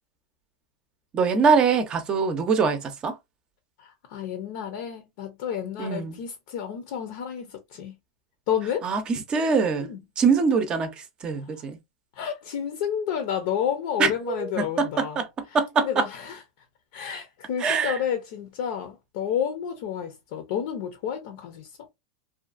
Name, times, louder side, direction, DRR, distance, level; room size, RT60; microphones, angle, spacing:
voice 1, 1.1-3.2 5.8-6.2 8.8-9.9 10.2-11.8 14.0-16.0 17.6-18.0, right 5 dB, 25° right, 0.6 m, -24 dB
voice 2, 3.8-7.9 8.5-8.9 9.8-10.0 11.4-11.5 12.1-15.2 15.8-16.4 16.9-21.7, left 8 dB, 60° left, 0.7 m, -30 dB
2.7 x 2.3 x 2.4 m
hypercardioid pair, 125°, 3 cm